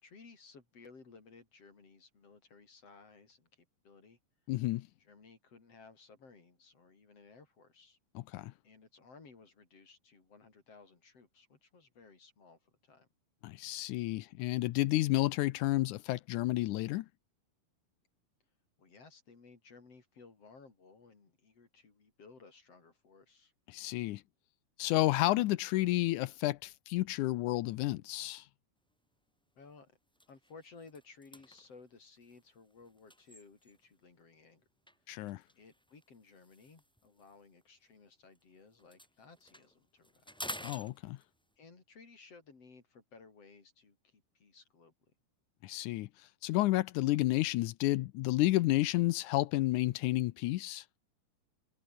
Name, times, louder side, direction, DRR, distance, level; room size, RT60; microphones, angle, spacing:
voice 1, 0.0-4.2 5.0-8.0 8.6-13.1 18.8-23.5 29.5-30.0 30.3-34.6 35.6-40.6 41.6-44.9, left 4 dB, 45° left, 5.0 m, -58 dB
voice 2, 4.5-4.9 8.2-8.5 13.4-17.1 23.7-24.2 24.8-28.4 35.1-35.4 40.6-41.2 45.6-46.1 46.4-50.8, left 17 dB, 80° left, 1.9 m, -31 dB
sound 1, 28.9-29.1 29.6-29.7 30.1-34.0 34.9-38.4 38.7-41.6, equal, ahead, 6.0 m, -51 dB
omnidirectional pair, 4.1 m